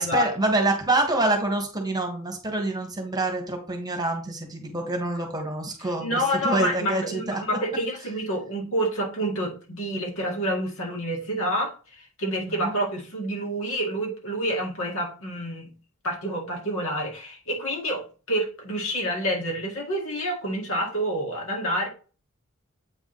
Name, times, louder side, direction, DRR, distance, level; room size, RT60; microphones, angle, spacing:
voice 1, 0.0-7.4 12.3-12.7, right 2 dB, 20° right, 3 dB, 1.5 m, -26 dB
voice 2, 6.0-15.7 16.0-21.9, equal, 65° left, 0 dB, 2.1 m, -28 dB
8.1 x 3.8 x 3.9 m, 0.36 s
head